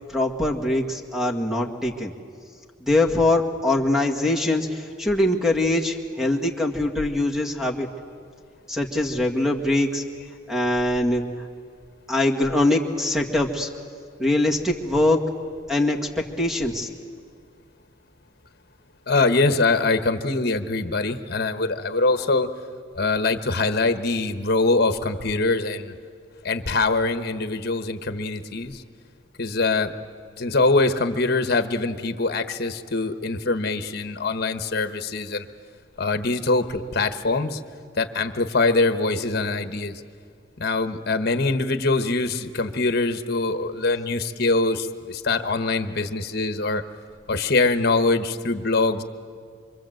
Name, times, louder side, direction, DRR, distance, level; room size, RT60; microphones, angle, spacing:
voice 1, 0.1-2.1 2.8-7.9 8.7-10.0 10.5-11.2 12.1-13.7 14.2-15.2 15.7-16.0 16.4-16.9, left 1 dB, 5° right, 3 dB, 1.9 m, -22 dB
voice 2, 19.1-22.5 22.9-25.9 26.4-28.8 29.4-29.9 30.4-35.5 36.0-37.6 38.0-40.0 40.6-46.8 47.3-49.0, left 3 dB, 55° left, 9 dB, 1.2 m, -23 dB
25.5 x 25.0 x 7.8 m, 2.1 s
head